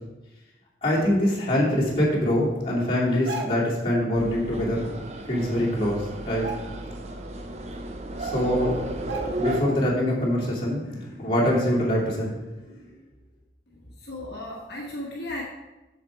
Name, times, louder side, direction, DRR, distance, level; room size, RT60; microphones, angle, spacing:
voice 1, 0.8-4.9 5.3-6.5 8.2-8.7 9.4-12.4 12.6-12.8, left 1 dB, 30° left, -6 dB, 2.7 m, -24 dB
sound 1, 3.1-3.8 5.3-5.4 5.7-5.9 6.3-7.1 7.5-7.6 8.4-8.5 9.1-9.7 10.1-10.2, right 2 dB, 85° right, 1.0 m, -37 dB
sound 2, 4.1-9.6, right 1 dB, 35° right, 0.8 m, -33 dB
voice 2, 13.7-15.4, left 1 dB, 60° left, -4 dB, 1.4 m, -35 dB
7.3 x 7.3 x 4.6 m, 1.0 s
head